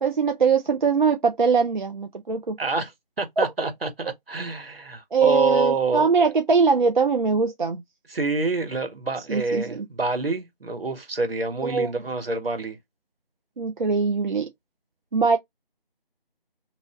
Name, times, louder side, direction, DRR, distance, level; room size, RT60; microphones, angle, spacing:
voice 1, 0.0-2.6 3.4-3.7 5.1-7.8 9.3-9.9 11.6-11.9 13.6-14.5 15.1-15.4, right 5 dB, 55° right, 0.6 m, -22 dB
voice 2, 2.6-2.9 3.2-6.1 8.1-12.8, right 3 dB, 75° right, 1.5 m, -27 dB
3.0 x 2.6 x 3.7 m
figure-of-eight pair, 165°, 29 cm